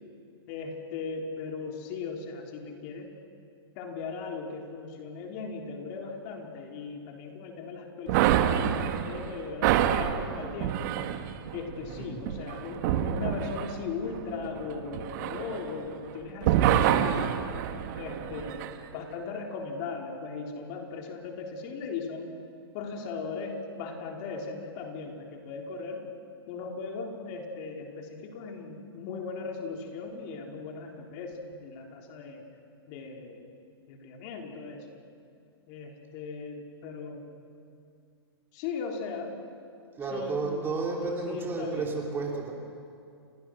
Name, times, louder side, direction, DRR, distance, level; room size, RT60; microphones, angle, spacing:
voice 1, 0.5-3.1 3.8-10.9 11.5-17.3 18.0-22.3 22.7-26.0 26.5-32.4 32.9-33.5 33.9-34.9 35.7-37.3 38.5-39.4 40.1-41.9, left 4 dB, 40° left, 2 dB, 3.7 m, -38 dB
sound 1, 8.1-16.1 16.4-18.7, right 10 dB, 45° right, 1.7 m, -27 dB
voice 2, 11.8-12.2 40.0-42.5, right 3 dB, 15° right, 0 dB, 3.6 m, -32 dB
29.0 x 22.5 x 6.3 m, 2.4 s
hypercardioid pair, 135°, 13 cm